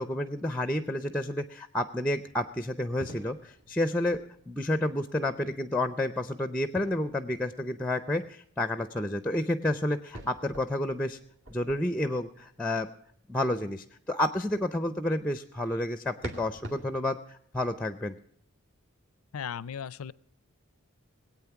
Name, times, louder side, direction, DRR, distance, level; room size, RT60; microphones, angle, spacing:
voice 1, 0.0-11.2 11.5-12.9 13.3-18.2, left 1 dB, 5° left, 11 dB, 0.5 m, -30 dB
sound 1, 2.2-5.0 6.7-7.9 10.1-12.8 16.2-17.0, right 1 dB, 55° right, 2.2 m, -47 dB
voice 2, 19.3-20.1, left 7 dB, 85° left, 20 dB, 0.5 m, -36 dB
20.5 x 8.7 x 5.8 m, 0.67 s
head